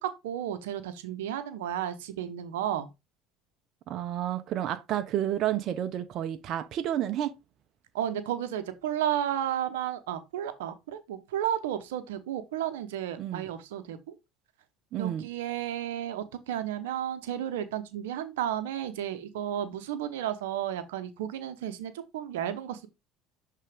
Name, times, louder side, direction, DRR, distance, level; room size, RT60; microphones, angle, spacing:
voice 1, 0.0-2.9 7.9-14.1 15.0-22.9, right 10 dB, 85° right, 0.9 m, -33 dB
voice 2, 3.9-7.3 13.2-13.4 14.9-15.3, right 11 dB, 55° right, 0.8 m, -30 dB
7.6 x 3.7 x 3.5 m
hypercardioid pair, 80°, 0 cm